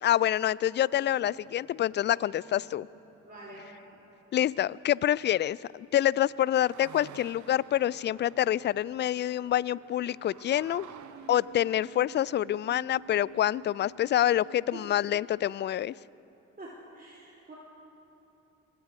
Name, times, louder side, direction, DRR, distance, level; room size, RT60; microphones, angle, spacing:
voice 1, 0.0-2.9 4.3-10.9 11.3-15.9, left 12 dB, 30° left, 0.4 m, -27 dB
sound 1, 1.1-5.2 5.8-5.9 6.1-15.1, right 8 dB, 50° right, 1.4 m, -52 dB
voice 2, 3.2-3.7 14.7-14.9 16.6-17.5, right 2 dB, 25° right, 4.4 m, -46 dB
27.0 x 23.5 x 4.9 m
figure-of-eight pair, 45°, 38 cm